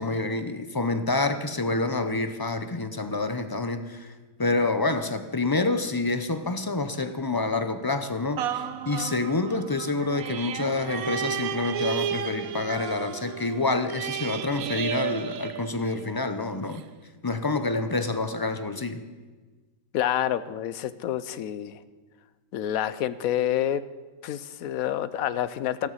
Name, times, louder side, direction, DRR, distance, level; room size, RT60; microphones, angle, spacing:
voice 1, 0.0-4.1 4.4-16.8 17.2-19.0, left 3 dB, 30° left, 9 dB, 0.4 m, -27 dB
sound 1, 8.4-16.2 16.7-16.8, right 9 dB, 80° right, 1.2 m, -33 dB
voice 2, 19.9-21.8 22.5-23.8 24.2-25.9, left 11 dB, 75° left, 15 dB, 1.1 m, -28 dB
14.5 x 12.5 x 5.7 m, 1.3 s
omnidirectional pair, 1.5 m